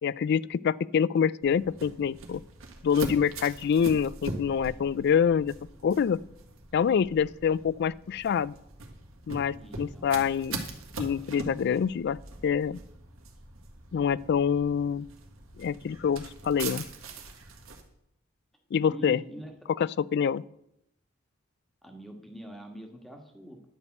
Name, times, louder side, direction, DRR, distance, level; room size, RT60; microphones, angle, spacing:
voice 1, 0.0-2.4 2.8-5.5 5.8-6.2 6.7-8.5 9.3-10.6 11.0-12.8 13.9-15.1 15.6-16.8 18.7-19.2 19.8-20.4, left 7 dB, 55° left, 21 dB, 0.3 m, -26 dB
sound 1, 1.4-17.8, right 3 dB, 85° right, 1.7 m, -42 dB
voice 2, 9.5-10.3 18.9-19.6 21.8-23.6, right 1 dB, ahead, 3 dB, 1.5 m, -44 dB
10.5 x 5.3 x 7.9 m, 0.78 s
head